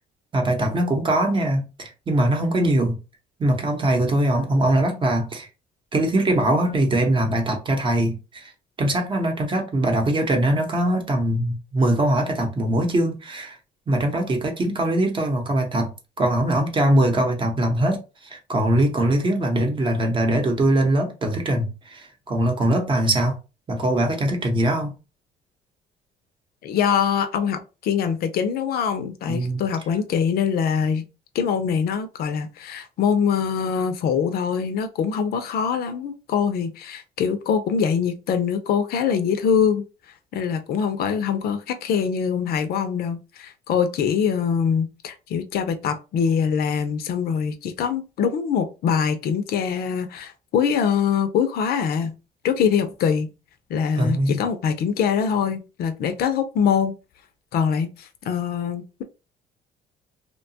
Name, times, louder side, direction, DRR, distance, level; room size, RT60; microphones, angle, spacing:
voice 1, 0.3-3.0 3.4-5.5 5.9-8.5 8.8-13.6 13.9-15.9 16.2-23.4 23.7-24.9 29.3-29.6 54.0-54.4, right 1 dB, 30° right, 0.8 m, -22 dB
voice 2, 26.6-31.0 31.3-39.8 40.3-52.1 52.4-53.3 53.7-56.9 57.5-59.0, left 7 dB, 65° left, 0.5 m, -23 dB
2.8 x 2.2 x 2.7 m
cardioid pair, 110°, 17 cm